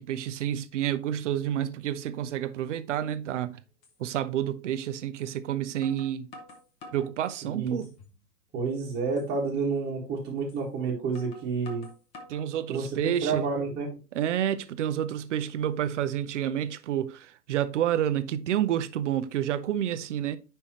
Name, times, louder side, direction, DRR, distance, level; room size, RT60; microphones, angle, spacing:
voice 1, 0.0-3.6 4.0-6.3 6.9-7.9 12.3-13.5 14.1-20.4, right 10 dB, 50° right, 0.7 m, -29 dB
sound 1, 3.2-3.3 3.8-4.0 5.2-5.3 5.8-7.1 7.6-8.2 8.6-8.7 9.2-9.3 10.5-10.6 11.1-12.5 13.0-13.5, left 2 dB, 15° left, 0.6 m, -49 dB
voice 2, 7.4-7.8 8.5-11.9 12.7-14.0, right 4 dB, 20° right, 1.8 m, -30 dB
9.9 x 3.5 x 3.0 m
hypercardioid pair, 130°, 48 cm